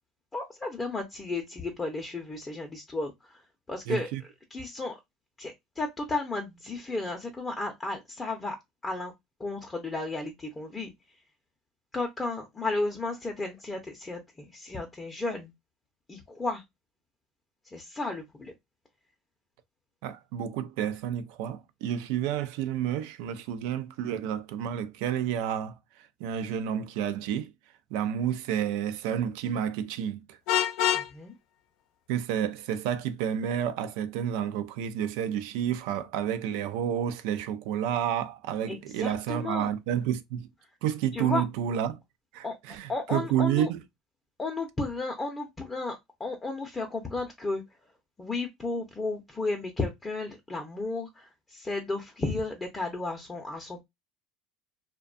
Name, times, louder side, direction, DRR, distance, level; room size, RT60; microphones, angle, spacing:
voice 1, 0.3-4.1 4.5-5.0 5.4-8.6 8.8-9.1 9.4-10.9 11.9-15.5 16.1-16.6 17.7-18.5 30.9-31.3 38.7-39.7 41.1-41.4 42.4-42.5 42.9-43.7 44.4-47.6 48.2-53.8, left 2 dB, 20° left, 0.5 m, -33 dB
voice 2, 3.9-4.2 20.0-25.7 26.2-27.5 27.9-30.4 32.1-40.5 40.8-42.0 42.3-43.8, right 9 dB, 75° right, 0.4 m, -30 dB
Vehicle horn car horn honking, 30.5-31.1, left 10 dB, 70° left, 0.4 m, -25 dB
2.5 x 2.2 x 2.4 m
supercardioid pair, 115°, 0 cm